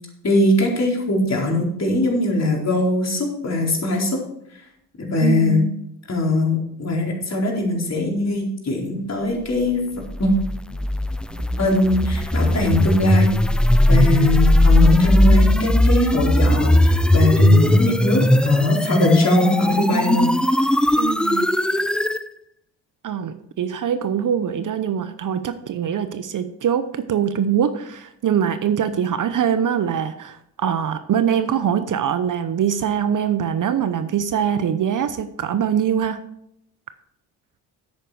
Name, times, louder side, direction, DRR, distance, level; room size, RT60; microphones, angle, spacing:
voice 1, 0.2-4.2 5.0-5.7 6.1-9.8 10.2-10.3 11.6-13.3 13.9-20.3, left 2 dB, 35° left, -1 dB, 4.2 m, -21 dB
voice 2, 5.2-5.8 21.0-21.5 23.0-36.2, right 8 dB, 45° right, 11 dB, 0.9 m, -23 dB
sound 1, 10.1-22.2, left 1 dB, ahead, 0.5 m, -17 dB
10.5 x 8.8 x 4.8 m, 0.76 s
hypercardioid pair, 50°, 44 cm